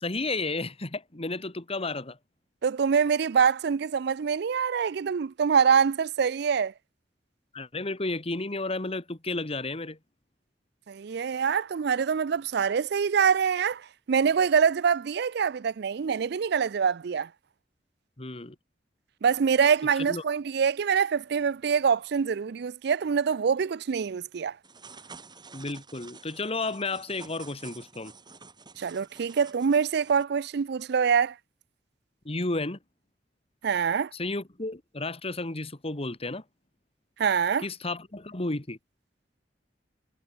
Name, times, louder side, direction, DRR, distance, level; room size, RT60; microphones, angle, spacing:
voice 1, 0.0-2.2 7.5-10.0 18.2-18.6 20.0-20.2 25.5-28.1 32.3-32.8 34.1-36.4 37.6-38.8, left 2 dB, 35° left, 1.7 m, -32 dB
voice 2, 2.6-6.7 10.9-17.3 19.2-24.6 28.8-31.3 33.6-34.1 37.2-37.6, right 6 dB, 65° right, 0.4 m, -25 dB
sound 1, 24.6-30.2, right 4 dB, 25° right, 6.9 m, -49 dB
head